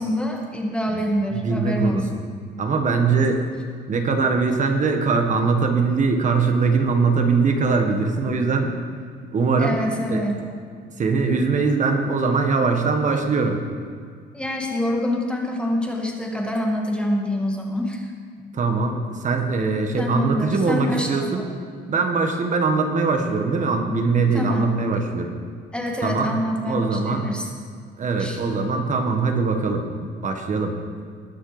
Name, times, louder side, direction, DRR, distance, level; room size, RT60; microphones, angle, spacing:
voice 1, 0.0-2.1 9.6-10.4 14.3-18.1 20.0-21.4 24.3-24.7 25.7-27.5 28.2-28.4, left 1 dB, 5° left, 0 dB, 1.6 m, -26 dB
voice 2, 1.3-2.3 2.6-3.4 3.9-8.7 9.3-9.8 10.1-10.2 11.0-13.6 18.5-21.5 21.9-25.3 26.0-26.3 26.6-27.3 28.0-30.7, right 4 dB, 40° right, 4 dB, 1.5 m, -22 dB
20.0 x 6.6 x 4.9 m, 2.1 s
cardioid pair, 135°, 19 cm